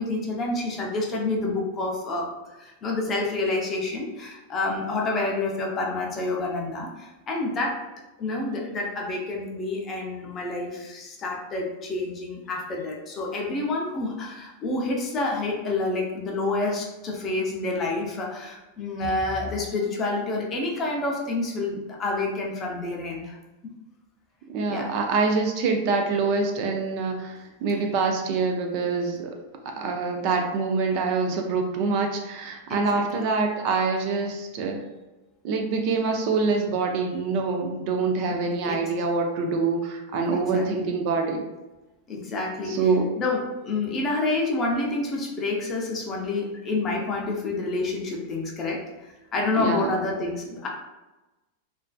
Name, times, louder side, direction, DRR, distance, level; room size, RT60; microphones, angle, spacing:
voice 1, 0.0-2.3 2.6-7.8 8.2-23.4 23.6-23.7 24.7-24.9 27.7-27.8 32.7-33.3 38.3-38.8 40.3-40.9 42.1-42.9 43.2-50.7, left 2 dB, 20° left, -1 dB, 0.4 m, -28 dB
voice 2, 24.5-29.3 29.7-34.8 35.4-41.4 42.7-43.1 49.6-49.9, right 4 dB, 45° right, 3 dB, 0.3 m, -25 dB
2.4 x 2.4 x 2.2 m, 1.1 s
supercardioid pair, 165°, 0 cm